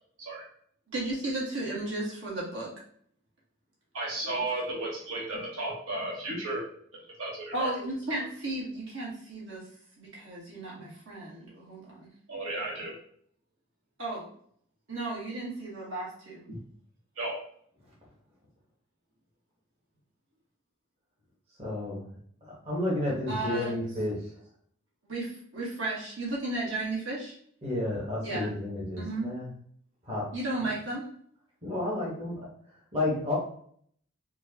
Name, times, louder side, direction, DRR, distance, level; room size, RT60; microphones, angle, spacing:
voice 1, 0.9-2.7 7.5-9.7 10.0-12.1 14.0-14.3 14.9-16.4 23.3-23.7 25.0-27.3 28.2-28.5 29.0-29.3 30.3-31.1, right 2 dB, 65° right, -6 dB, 1.5 m, -34 dB
voice 2, 3.9-6.6 7.2-7.7 12.3-12.9 16.5-16.6 17.2-17.4, right 2 dB, 85° right, -4 dB, 1.2 m, -34 dB
voice 3, 21.6-22.1 22.4-24.4 27.6-29.5 30.0-30.3 31.6-33.4, left 1 dB, 30° right, -6 dB, 1.1 m, -32 dB
4.5 x 2.3 x 2.8 m, 0.62 s
head